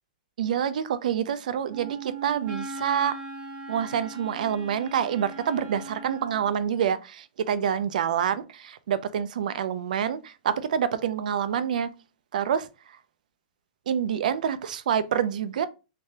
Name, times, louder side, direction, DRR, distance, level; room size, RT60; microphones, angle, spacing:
voice 1, 0.4-3.2 3.7-11.9 12.3-12.7 13.9-15.7, right 8 dB, 65° right, 0.4 m, -27 dB
Wind instrument woodwind instrument, 1.7-6.5, right 3 dB, 15° right, 0.6 m, -39 dB
3.3 x 3.3 x 2.8 m
supercardioid pair, 175°, 5 cm